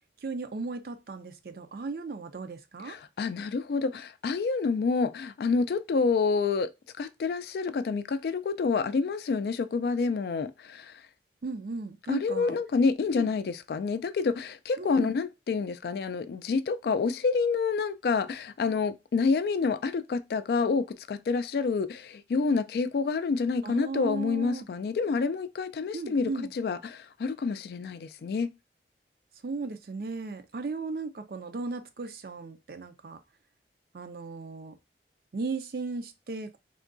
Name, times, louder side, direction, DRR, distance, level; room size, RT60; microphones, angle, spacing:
voice 1, 0.2-3.0 11.4-12.6 13.1-13.3 14.8-15.1 23.6-24.7 25.9-26.5 29.4-33.2 33.9-34.8 35.3-36.6, right 3 dB, 55° right, 0.4 m, -36 dB
voice 2, 2.9-6.7 7.0-10.9 12.1-28.5, left 4 dB, 60° left, 0.3 m, -28 dB
3.6 x 2.2 x 2.5 m
head